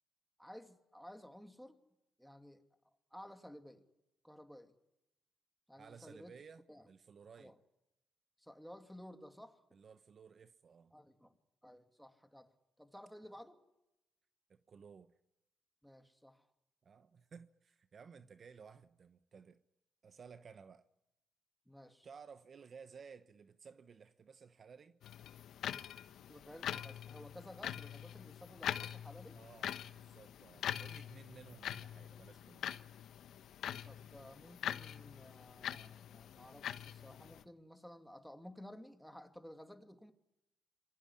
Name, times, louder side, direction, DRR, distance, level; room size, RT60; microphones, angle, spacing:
voice 1, 0.4-1.8 2.2-2.6 3.1-3.9 4.2-4.7 5.7-6.3 6.7-6.9 7.4-7.6 8.4-9.6 10.9-11.3 11.6-13.6 15.8-16.5 21.7-22.1 26.2-29.4 33.8-40.1, equal, ahead, 2.8 m, -54 dB
voice 2, 5.7-7.5 9.7-11.0 14.5-15.1 16.8-19.6 20.0-20.9 22.0-25.0 29.3-32.7, right 6 dB, 45° right, 1.0 m, -57 dB
sound 1, 25.0-37.4, left 10 dB, 75° left, 1.1 m, -44 dB
26.5 x 21.5 x 9.9 m
cardioid pair, 90°, 0 cm